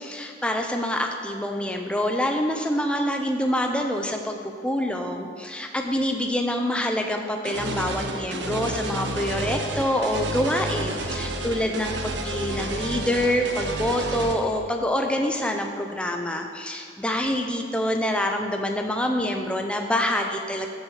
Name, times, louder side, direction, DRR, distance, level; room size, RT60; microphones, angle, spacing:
voice 1, 0.0-20.7, left 1 dB, 5° left, 3 dB, 0.6 m, -26 dB
sound 1, 7.4-14.3, right 2 dB, 90° right, 1.1 m, -30 dB
13.5 x 6.4 x 4.9 m, 2.4 s
head